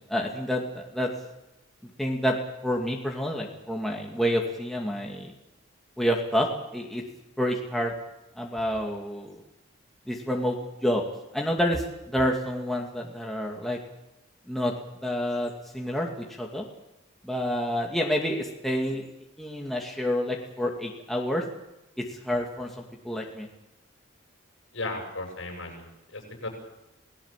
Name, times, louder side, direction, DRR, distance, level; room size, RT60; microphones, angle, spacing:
voice 1, 0.1-1.1 2.0-2.4 2.6-5.3 6.0-7.0 7.4-7.9 8.4-9.3 10.1-10.6 10.8-11.0 11.3-13.8 14.5-14.7 15.0-16.7 17.2-19.1 19.4-21.4 22.0-23.5, equal, ahead, -1 dB, 2.4 m, -28 dB
voice 2, 24.7-26.5, left 2 dB, 70° left, 2 dB, 7.9 m, -36 dB
28.5 x 18.0 x 7.6 m, 0.92 s
head